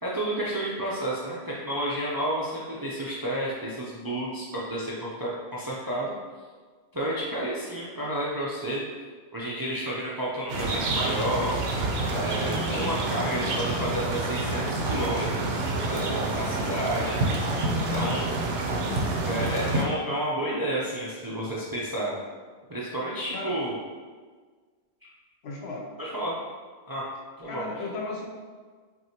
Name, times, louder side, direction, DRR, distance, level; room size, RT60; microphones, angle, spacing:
voice 1, 0.0-6.1 6.9-8.8 9.3-11.6 12.1-18.3 19.2-22.1 22.7-23.8 25.0-25.1 26.0-26.3 26.9-27.0 27.4-27.8, right 1 dB, 30° right, -6 dB, 0.4 m, -31 dB
sound 1, 10.5-19.8, right 2 dB, 70° right, 0.9 m, -28 dB
voice 2, 16.3-16.8 23.3-23.6 25.4-25.9 27.5-28.3, left 3 dB, 70° left, -1 dB, 0.9 m, -36 dB
6.0 x 2.6 x 2.9 m, 1.5 s
omnidirectional pair, 1.1 m